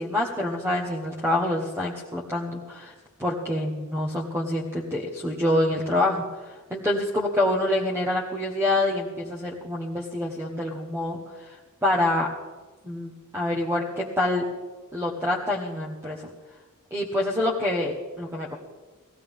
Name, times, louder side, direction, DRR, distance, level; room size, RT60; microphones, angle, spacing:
voice 1, 0.0-2.9 3.2-6.2 6.7-11.2 11.4-11.6 11.8-12.3 12.8-14.4 14.9-16.2 16.9-18.5, left 1 dB, 10° right, -1 dB, 1.2 m, -26 dB
19.0 x 15.5 x 3.6 m, 1.3 s
head